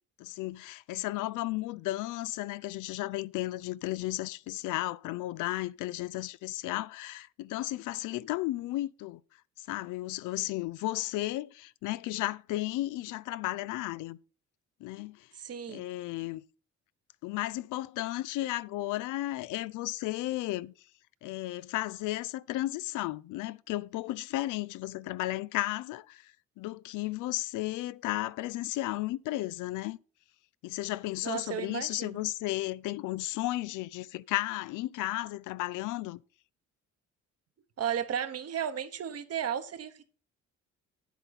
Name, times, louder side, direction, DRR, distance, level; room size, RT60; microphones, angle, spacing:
voice 1, 0.2-9.2 9.6-14.2 14.8-15.3 15.7-16.4 17.2-20.7 21.2-30.0 30.6-36.2, left 17 dB, 90° left, 0.4 m, -34 dB
voice 2, 15.4-15.8 31.2-32.2 37.8-40.0, right 9 dB, 55° right, 1.1 m, -34 dB
9.0 x 8.2 x 4.1 m
cardioid pair, 90°, 30 cm